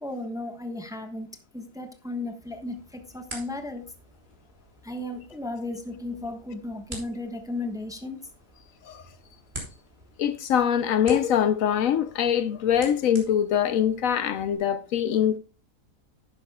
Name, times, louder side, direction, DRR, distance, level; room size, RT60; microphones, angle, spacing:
voice 1, 0.0-1.3 1.5-3.9 4.8-8.2, left 2 dB, 5° right, 1.0 m, -35 dB
sound 1, 2.4-14.6, right 1 dB, 30° right, 3.5 m, -47 dB
voice 2, 10.2-15.4, left 9 dB, 70° left, 1.0 m, -23 dB
11.5 x 10.0 x 2.3 m
omnidirectional pair, 1.5 m